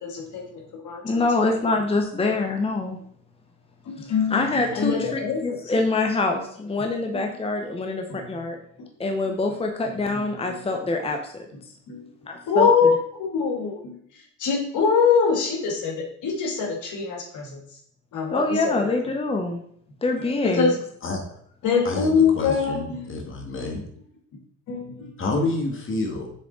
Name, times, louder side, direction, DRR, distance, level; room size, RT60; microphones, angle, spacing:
voice 1, 0.0-1.0 1.4-1.5 2.2-2.3 3.9-5.6 6.8-6.9 7.1-7.3 8.1-8.4 10.1-10.2 11.9-12.1 12.5-14.0 14.4-17.6 18.1-18.9 20.2-20.8 21.6-23.2 23.6-23.7 24.7-25.2, left 5 dB, 80° left, 1 dB, 1.7 m, -24 dB
voice 2, 1.0-3.0 4.0-8.6 9.0-11.5 12.3-12.7 18.3-19.6 20.0-20.8, left 3 dB, 20° left, 3 dB, 0.8 m, -25 dB
voice 3, 21.8-23.8 25.2-26.3, left 2 dB, 45° left, 1 dB, 1.9 m, -28 dB
7.3 x 3.7 x 3.9 m, 0.64 s
cardioid pair, 90°, 30 cm